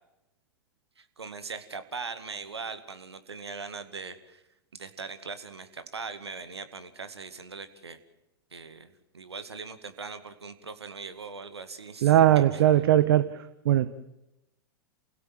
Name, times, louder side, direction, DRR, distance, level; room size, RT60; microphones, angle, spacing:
voice 1, 1.0-4.4 4.7-8.0 8.5-12.7, right 4 dB, 85° right, 10 dB, 2.1 m, -40 dB
voice 2, 12.0-13.4 13.6-13.9, right 12 dB, 65° right, 14 dB, 1.0 m, -20 dB
28.5 x 17.0 x 7.8 m, 0.94 s
hypercardioid pair, 100°, 13 cm